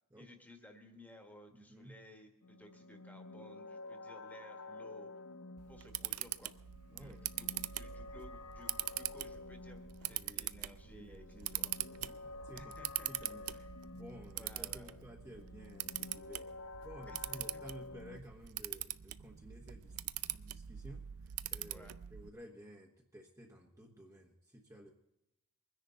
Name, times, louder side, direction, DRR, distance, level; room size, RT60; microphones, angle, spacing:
voice 1, 0.1-5.1 5.7-6.5 6.9-11.2 11.5-11.7 12.5-13.7 14.3-15.0 17.1-17.6 21.7-22.0, left 1 dB, 10° left, 4 dB, 1.6 m, -57 dB
voice 2, 1.5-2.0 6.9-7.6 10.1-10.5 10.8-12.7 13.1-13.5 13.9-16.5 16.8-19.9 20.3-24.9, equal, 15° right, -1 dB, 1.2 m, -54 dB
sound 1, 2.4-18.2, left 3 dB, 80° left, 0.6 m, -51 dB
Camera, 5.6-22.3, right 14 dB, 90° right, 0.5 m, -43 dB
sound 2, 8.5-21.8, right 2 dB, 40° right, 0.6 m, -63 dB
23.0 x 10.0 x 3.9 m, 0.89 s
head